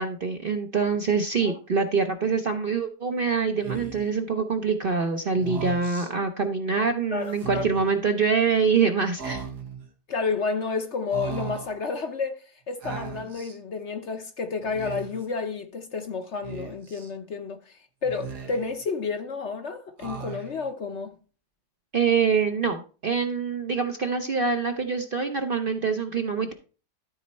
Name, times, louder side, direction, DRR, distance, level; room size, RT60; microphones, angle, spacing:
voice 1, 0.0-9.4 21.9-26.5, right 5 dB, 45° right, 0.7 m, -25 dB
Speech, 3.6-4.1 5.3-6.1 7.3-8.0 9.2-9.9 11.1-11.8 12.8-13.6 14.6-15.3 16.4-17.1 18.0-18.8 20.0-20.7, right 6 dB, 85° right, 2.0 m, -37 dB
voice 2, 7.1-7.7 10.1-21.2, left 4 dB, 55° left, 1.0 m, -31 dB
12.5 x 4.3 x 4.2 m
omnidirectional pair, 1.7 m